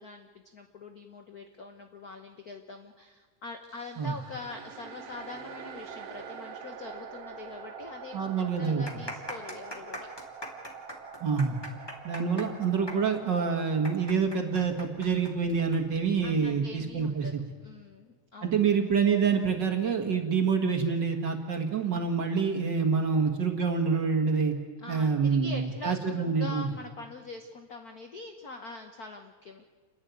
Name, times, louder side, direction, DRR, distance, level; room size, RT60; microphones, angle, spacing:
voice 1, 0.0-10.1 16.2-17.3 17.6-18.5 24.8-29.6, left 3 dB, 60° left, 5 dB, 1.0 m, -43 dB
sound 1, 3.6-14.1, right 6 dB, 60° right, 2.2 m, -45 dB
sound 2, 7.4-7.5 7.8-7.9 8.5-15.8 16.1-16.2 16.9-17.2, equal, 10° left, 2.1 m, -41 dB
voice 2, 8.1-8.8 11.2-11.6 12.0-17.4 18.4-24.5 24.9-26.7, right 5 dB, 45° right, 4 dB, 2.0 m, -27 dB
29.5 x 11.0 x 9.4 m, 1.5 s
omnidirectional pair, 3.3 m